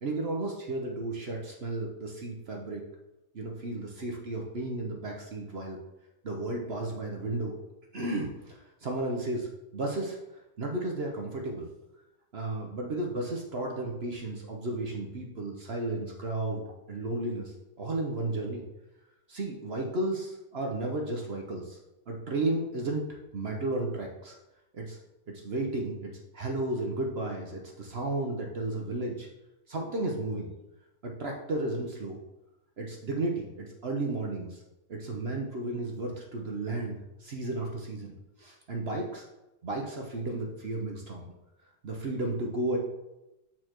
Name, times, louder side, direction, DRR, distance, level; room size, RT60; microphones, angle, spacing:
voice 1, 0.0-2.8 3.3-5.8 6.2-7.6 7.9-10.2 10.6-11.7 12.3-18.6 19.3-21.8 22.1-23.0 23.3-24.3 24.7-25.0 25.3-29.3 29.7-30.5 31.0-32.2 32.8-34.6 34.9-38.1 38.4-39.3 39.6-41.3 41.8-42.8, right 2 dB, 50° right, 0 dB, 0.8 m, -33 dB
8.4 x 4.4 x 3.0 m, 0.96 s
omnidirectional pair, 1.8 m